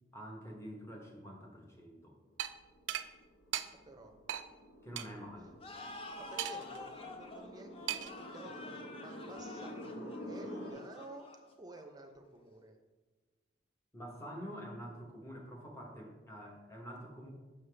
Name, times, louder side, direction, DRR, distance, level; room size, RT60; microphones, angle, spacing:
voice 1, 0.1-2.1 4.8-5.5 13.9-17.3, equal, 15° left, 0 dB, 1.0 m, -47 dB
sound 1, 2.4-2.5 2.9-3.1 3.5-3.7 4.3-4.5 5.0-5.1 6.4-6.8 7.9-8.2, right 11 dB, 75° right, 0.3 m, -37 dB
sound 2, 2.7-10.7, equal, 80° left, 1.4 m, -48 dB
voice 2, 3.7-4.2 5.4-5.5 6.2-11.3 11.6-12.8, right 2 dB, 20° right, 4 dB, 0.6 m, -52 dB
sound 3, 5.6-12.1, left 2 dB, 30° left, 0.5 m, -49 dB
6.7 x 5.5 x 3.3 m, 1.3 s
head